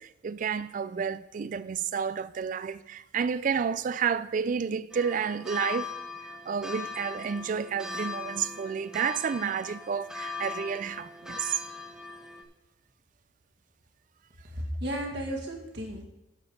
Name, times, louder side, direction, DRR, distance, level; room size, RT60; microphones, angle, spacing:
voice 1, 0.0-5.9 6.2-11.6, right 6 dB, 45° right, 0.3 m, -30 dB
sound 1, 4.9-12.4, left 4 dB, 5° right, 1.0 m, -39 dB
voice 2, 14.4-16.0, equal, 60° right, 2.0 m, -34 dB
10.5 x 5.3 x 6.4 m
head